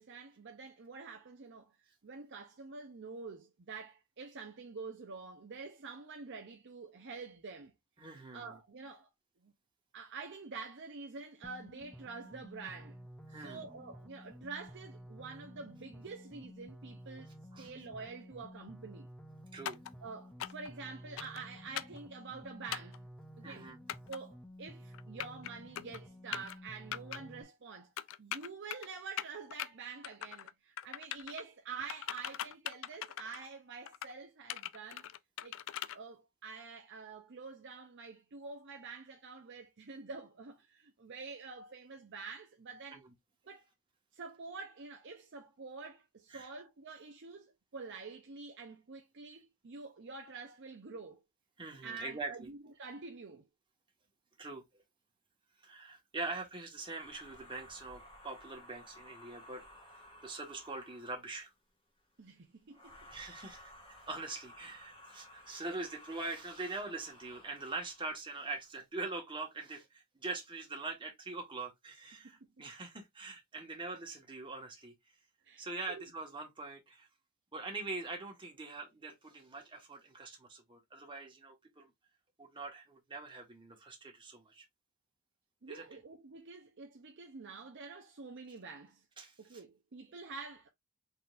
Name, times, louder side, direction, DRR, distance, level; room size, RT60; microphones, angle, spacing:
voice 1, 0.0-7.7 8.3-9.1 9.4-9.5 9.9-13.0 13.3-17.3 17.6-19.1 20.0-23.0 23.4-23.7 24.1-27.9 28.2-35.0 35.4-35.6 35.9-43.0 43.5-43.7 44.1-51.2 51.8-53.5 62.2-63.1 75.4-76.1 85.6-89.0 89.4-90.7, right 4 dB, 55° right, 0.7 m, -47 dB
voice 2, 8.0-8.6 13.3-13.6 17.5-17.7 19.5-19.8 23.4-23.8 42.9-43.1 46.3-46.5 51.6-52.5 54.4-54.6 55.6-61.5 63.1-63.7 64.1-74.9 75.6-77.1 77.5-81.9 82.4-84.6 85.7-85.9 89.2-89.6, right 3 dB, 20° right, 1.5 m, -43 dB
sound 1, 11.4-27.4, equal, 5° left, 0.7 m, -52 dB
sound 2, 19.7-19.9 20.4-20.7 21.2-21.4 21.8-22.0 22.7-23.0 23.9-24.2 24.9-25.5 25.8-26.0 26.3-26.6 26.9-27.2 28.0-28.9 29.2-29.7 30.0-30.5 30.8-31.4 31.9-33.5 33.9-34.1 34.5-36.0, left 11 dB, 60° left, 0.3 m, -40 dB
sound 3, 56.8-61.3 62.7-68.2, left 1 dB, 25° left, 1.4 m, -56 dB
4.1 x 3.9 x 2.4 m
head